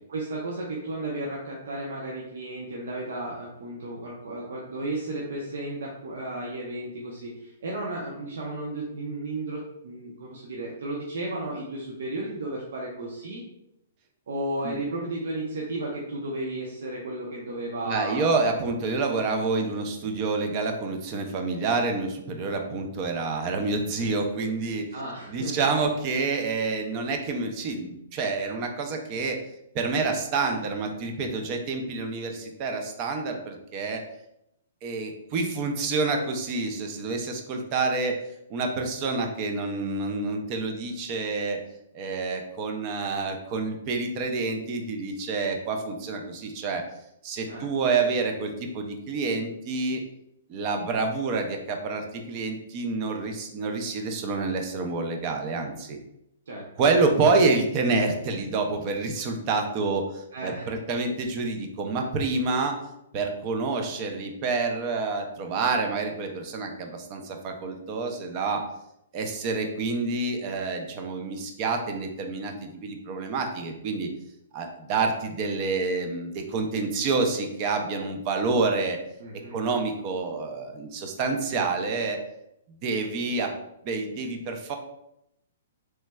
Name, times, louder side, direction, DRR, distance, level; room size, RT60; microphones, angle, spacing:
voice 1, 0.1-13.4 14.3-18.6 24.9-25.6 47.5-47.7 56.5-56.7 60.3-60.7 79.2-79.6, right 2 dB, 75° right, -3 dB, 0.6 m, -34 dB
voice 2, 17.8-24.9 25.3-29.4 29.7-34.0 34.8-38.2 38.5-41.6 41.9-46.8 47.2-50.0 50.5-56.0 56.8-62.8 63.1-68.6 69.1-74.1 74.5-79.0 79.5-82.2 82.8-83.5 83.8-84.8, right 3 dB, 35° right, 4 dB, 0.5 m, -28 dB
3.2 x 3.0 x 2.2 m, 0.81 s
hypercardioid pair, 150°, 0 cm